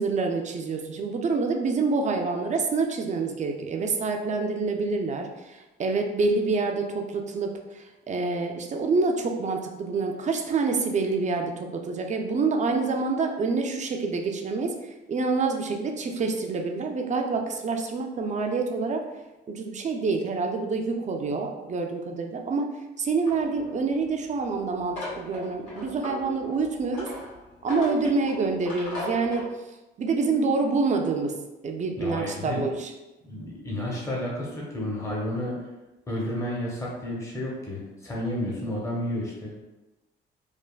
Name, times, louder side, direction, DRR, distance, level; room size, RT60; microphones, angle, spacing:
voice 1, 0.0-19.0 19.5-22.7 23.0-27.1 27.6-29.5 30.0-31.4 31.6-32.9, right 4 dB, 35° right, 3 dB, 0.4 m, -27 dB
sound 1, 23.3-29.5, equal, 75° left, 1.3 m, -38 dB
voice 2, 32.0-32.6 33.2-35.5 36.1-39.6, left 1 dB, 15° left, -4 dB, 0.7 m, -31 dB
3.3 x 2.1 x 2.3 m, 1.1 s
cardioid pair, 90°, 20 cm